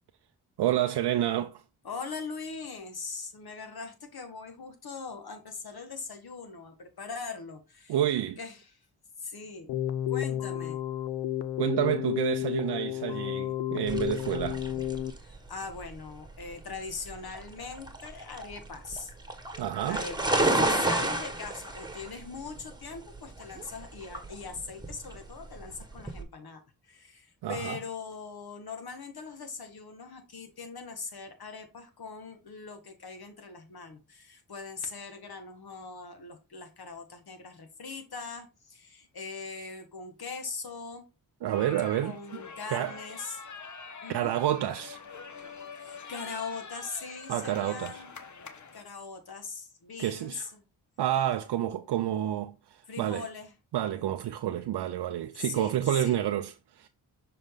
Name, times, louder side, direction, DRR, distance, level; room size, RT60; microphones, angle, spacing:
voice 1, 0.6-1.6 7.9-8.4 11.6-14.6 19.6-20.0 27.4-27.8 41.4-42.4 42.7-43.0 44.1-45.0 47.3-48.0 50.0-50.5 51.0-53.3 53.7-56.9, right 11 dB, 75° right, 0.6 m, -29 dB
voice 2, 1.8-8.0 8.4-8.9 9.2-9.7 10.1-10.8 15.2-19.1 19.9-41.1 42.0-43.4 44.0-44.3 45.8-48.2 48.7-50.6 52.9-53.5 55.4-56.2, left 4 dB, 60° left, 1.8 m, -41 dB
Keyboard (musical), 9.7-15.1, left 12 dB, 75° left, 0.6 m, -31 dB
sound 1, 13.9-26.2, right 2 dB, 10° right, 1.5 m, -32 dB
sound 2, 41.5-48.8, left 5 dB, 45° left, 1.1 m, -45 dB
6.4 x 3.9 x 3.8 m
cardioid pair, 50°, 41 cm